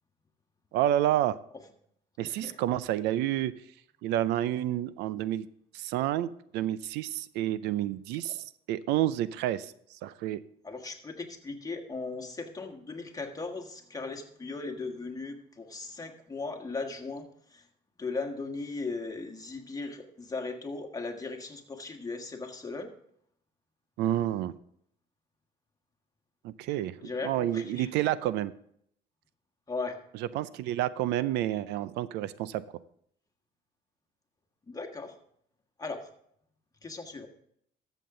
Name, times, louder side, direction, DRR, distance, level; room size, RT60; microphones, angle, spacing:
voice 1, 0.7-1.4 2.2-3.5 4.0-5.5 5.7-9.7 10.0-10.4 24.0-24.5 26.4-28.5 30.3-32.6, right 13 dB, 90° right, 17 dB, 0.5 m, -29 dB
voice 2, 2.2-2.6 10.6-17.6 18.0-22.9 27.0-28.1 29.7-30.0 34.7-35.2 35.8-36.1 36.8-37.3, left 3 dB, 20° left, 4 dB, 1.6 m, -38 dB
13.0 x 7.3 x 3.8 m, 0.69 s
cardioid pair, 110°, 17 cm